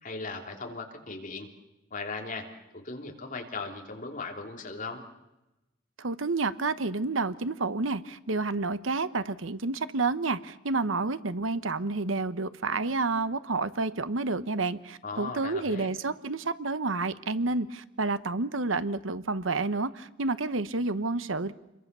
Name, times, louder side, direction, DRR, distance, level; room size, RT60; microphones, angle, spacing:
voice 1, 0.0-1.5 1.9-5.0 15.0-15.9, left 3 dB, 40° left, 2 dB, 3.3 m, -38 dB
voice 2, 6.0-21.5, right 3 dB, 85° right, 14 dB, 1.0 m, -29 dB
28.0 x 22.5 x 6.9 m, 0.98 s
head